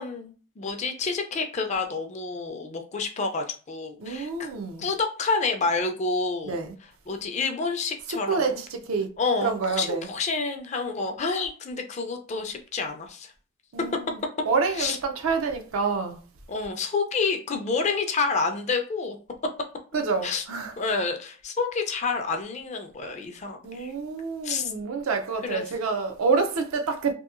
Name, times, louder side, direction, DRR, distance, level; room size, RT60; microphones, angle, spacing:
voice 1, 0.0-4.5 4.8-6.6 7.1-8.6 9.2-13.3 14.8-15.0 16.5-19.2 20.2-20.4 20.8-23.9 24.4-24.7 25.4-25.6, left 4 dB, 35° left, 0.4 m, -28 dB
voice 2, 4.0-4.8 6.5-6.7 8.1-9.1 9.4-10.1 13.7-16.2 19.9-20.7 23.6-27.1, right 4 dB, 85° right, 0.5 m, -27 dB
2.7 x 2.6 x 2.4 m
head